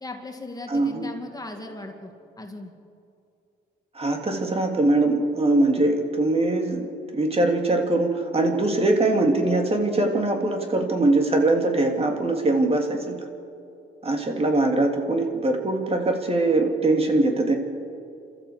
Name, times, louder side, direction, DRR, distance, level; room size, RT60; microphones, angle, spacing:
voice 1, 0.0-2.1 2.4-2.7, left 2 dB, 20° left, 3 dB, 2.2 m, -37 dB
voice 2, 0.7-1.0 3.9-13.3 14.0-17.6, right 2 dB, 30° right, 3 dB, 3.1 m, -22 dB
27.5 x 13.5 x 8.1 m, 2.5 s
cardioid pair, 90°, 20 cm